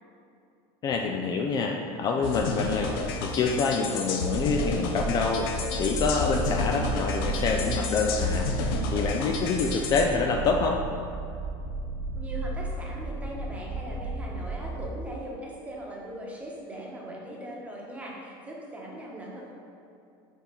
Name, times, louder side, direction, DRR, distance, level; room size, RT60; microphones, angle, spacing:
voice 1, 0.8-5.5 5.8-10.8, left 4 dB, 35° left, 2 dB, 0.4 m, -27 dB
sound 1, 2.2-10.0, left 4 dB, 90° left, 0.7 m, -32 dB
sound 2, 4.3-14.9, right 2 dB, 75° right, 1.2 m, -33 dB
voice 2, 12.1-19.5, right 1 dB, 10° right, -3 dB, 1.1 m, -40 dB
6.8 x 4.5 x 3.9 m, 2.6 s
cardioid pair, 145°, 12 cm